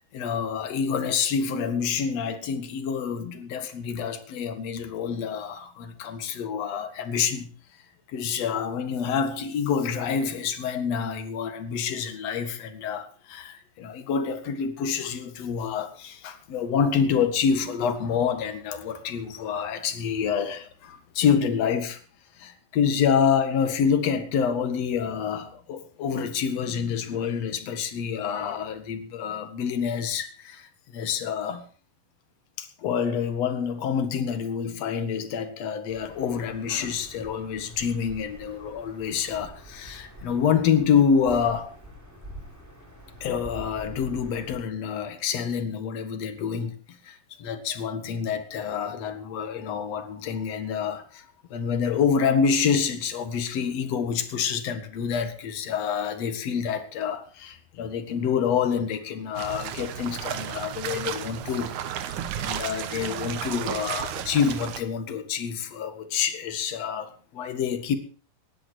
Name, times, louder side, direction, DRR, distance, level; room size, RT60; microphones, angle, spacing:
voice 1, 0.1-7.5 8.1-22.0 22.4-31.6 32.6-41.8 43.2-51.3 51.5-61.7 62.4-68.0, left 7 dB, 50° left, 2.4 m, -27 dB
sound 1, 35.9-44.6, equal, 5° right, 3.5 m, -45 dB
sound 2, 59.3-64.8, right 10 dB, 65° right, 2.1 m, -33 dB
19.0 x 11.5 x 4.8 m
omnidirectional pair, 4.6 m